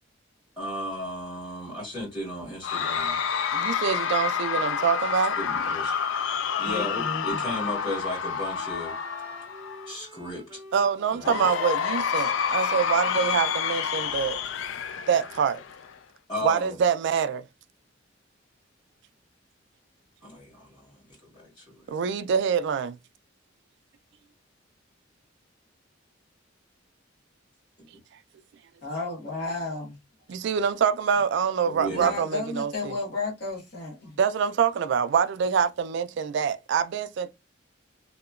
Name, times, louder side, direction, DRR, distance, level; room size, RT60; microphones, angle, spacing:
voice 1, 0.6-3.2 5.4-5.9 6.6-8.9 9.8-10.6 11.1-11.5 16.3-16.8 20.2-21.9 31.6-32.1, left 1 dB, 20° left, 1.5 m, -35 dB
Cheering / Crowd, 2.6-9.9 11.2-15.9, left 7 dB, 75° left, 0.3 m, -28 dB
voice 2, 3.5-5.4 10.7-14.4 15.1-15.6 16.4-17.5 21.9-23.0 30.3-32.9 34.2-37.3, right 7 dB, 65° right, 0.3 m, -25 dB
Wind instrument woodwind instrument, 6.5-15.0, equal, 20° right, 0.6 m, -50 dB
voice 3, 6.6-7.4 28.8-30.0 31.9-34.2, left 3 dB, 55° left, 1.0 m, -33 dB
2.8 x 2.1 x 2.3 m
head